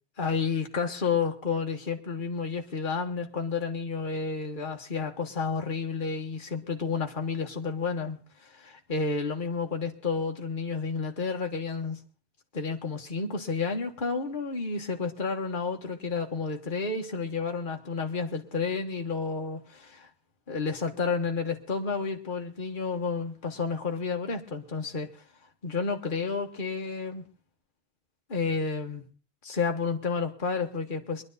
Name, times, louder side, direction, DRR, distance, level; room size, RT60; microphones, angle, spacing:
voice 1, 0.2-12.0 12.5-20.1 20.5-25.2 25.6-27.2 28.3-29.0 29.4-31.2, left 5 dB, 50° left, 3 dB, 1.6 m, -31 dB
22.0 x 11.5 x 4.0 m, 0.37 s
omnidirectional pair, 1.1 m